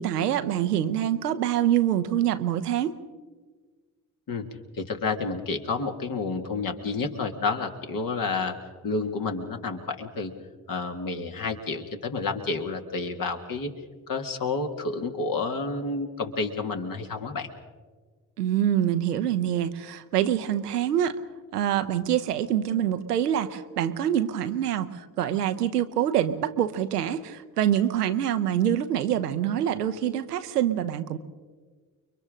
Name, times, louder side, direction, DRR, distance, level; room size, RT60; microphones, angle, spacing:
voice 1, 0.0-2.9 18.4-21.2 21.5-31.2, right 10 dB, 80° right, 10 dB, 0.8 m, -25 dB
voice 2, 4.7-8.6 8.8-10.3 10.7-13.7 14.1-17.5, left 4 dB, 45° left, 5 dB, 2.1 m, -30 dB
29.5 x 23.0 x 3.8 m, 1.5 s
figure-of-eight pair, 45°, 47 cm